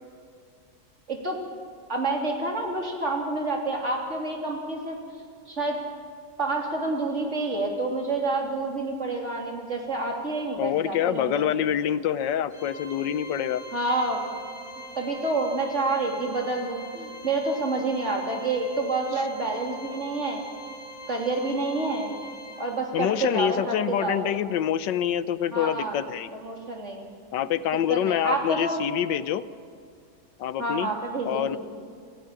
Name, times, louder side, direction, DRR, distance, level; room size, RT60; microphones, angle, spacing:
voice 1, 1.9-5.0 5.5-5.8 6.4-11.5 13.7-14.2 15.0-20.8 21.1-22.1 22.6-24.3 25.5-25.9 26.3-27.0 27.9-28.8 30.6-31.6, right 2 dB, 40° right, 1 dB, 3.6 m, -28 dB
voice 2, 10.6-13.6 22.9-26.3 27.3-29.4 30.4-30.9 31.2-31.6, left 10 dB, 90° left, 14 dB, 1.5 m, -26 dB
Organ, 12.5-23.2, equal, 45° left, 2.6 m, -43 dB
28.5 x 14.5 x 8.9 m, 2.2 s
omnidirectional pair, 1.9 m